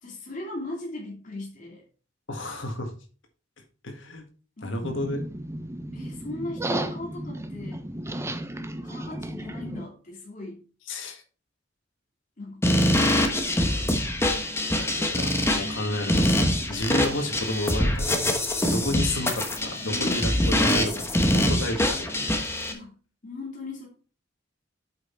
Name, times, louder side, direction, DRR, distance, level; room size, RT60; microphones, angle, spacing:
voice 1, 0.0-1.8 4.6-5.0 5.9-7.8 8.8-10.6 12.4-14.2 19.8-20.9 22.7-23.0 23.2-23.9, left 2 dB, 40° left, -2 dB, 2.7 m, -38 dB
voice 2, 2.3-2.9 3.8-4.2 4.6-5.3 10.9-11.2 14.7-18.3 18.6-20.9 21.2-22.3, left 1 dB, 70° left, 4 dB, 1.8 m, -31 dB
sound 1, 4.8-9.8, right 1 dB, 15° right, 0.6 m, -34 dB
sound 2, 12.6-22.7, left 1 dB, 15° left, 1.2 m, -24 dB
7.9 x 5.6 x 4.5 m, 0.38 s
head